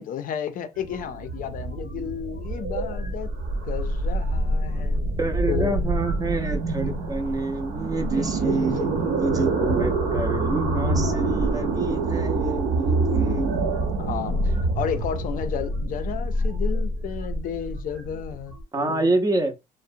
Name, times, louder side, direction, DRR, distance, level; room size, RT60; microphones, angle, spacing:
voice 1, 0.0-3.3 3.6-5.0 5.5-5.8 8.1-8.7 9.0-9.5 14.0-19.1, left 9 dB, 55° left, 0.4 m, -33 dB
sound 1, 0.8-18.6, right 2 dB, 75° right, 1.0 m, -26 dB
voice 2, 5.2-8.9 9.2-13.5 18.7-19.5, right 2 dB, 20° right, 0.5 m, -27 dB
2.7 x 2.0 x 2.5 m
cardioid pair, 110°, 17 cm